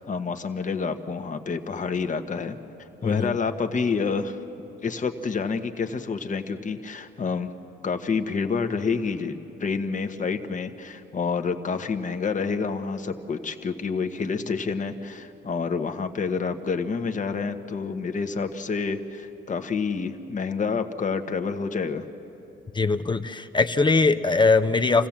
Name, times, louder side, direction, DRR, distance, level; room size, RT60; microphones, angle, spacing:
voice 1, 0.1-2.6 3.0-4.4 4.8-7.5 7.8-22.1, left 5 dB, 40° left, 7 dB, 1.2 m, -28 dB
voice 2, 3.0-3.4 22.7-25.1, left 3 dB, 25° left, 9 dB, 0.7 m, -21 dB
28.0 x 16.0 x 7.3 m, 2.9 s
cardioid pair, 90°, 20 cm